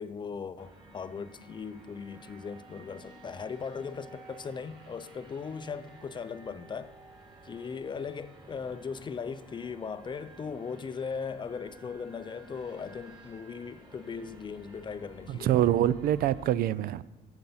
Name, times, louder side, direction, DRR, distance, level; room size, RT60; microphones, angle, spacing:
voice 1, 0.0-6.9 7.4-15.6, left 6 dB, 30° left, 0.4 m, -38 dB
sound 1, 0.6-16.5, right 1 dB, 30° right, 3.4 m, -52 dB
voice 2, 15.3-17.0, right 12 dB, 65° right, 0.4 m, -25 dB
8.6 x 7.9 x 5.6 m
cardioid pair, 110°, 17 cm